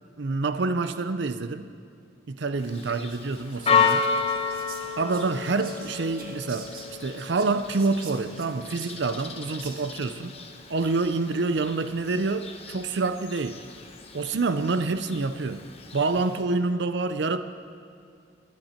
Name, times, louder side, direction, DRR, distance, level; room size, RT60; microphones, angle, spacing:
voice 1, 0.2-1.7 2.3-4.0 5.0-6.7 7.0-10.3 10.7-13.6 14.1-15.6 15.9-17.4, right 3 dB, 65° right, 10 dB, 0.5 m, -27 dB
Church bell, 2.6-16.4, left 5 dB, 30° left, 0.9 m, -32 dB
Whispering, 2.6-10.2, right 5 dB, 45° right, 1.3 m, -47 dB
23.0 x 10.5 x 4.4 m, 2.4 s
head